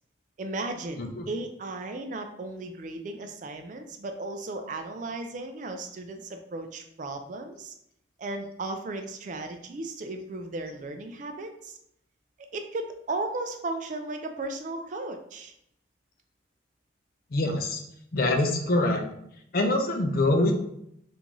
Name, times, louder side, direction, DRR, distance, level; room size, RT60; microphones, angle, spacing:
voice 1, 0.4-7.7 8.2-11.8 12.5-15.5, right 2 dB, 40° right, 6 dB, 0.3 m, -35 dB
voice 2, 17.3-17.8 18.1-19.0 19.5-20.5, left 2 dB, 50° left, 3 dB, 0.5 m, -24 dB
3.7 x 2.5 x 2.9 m, 0.74 s
head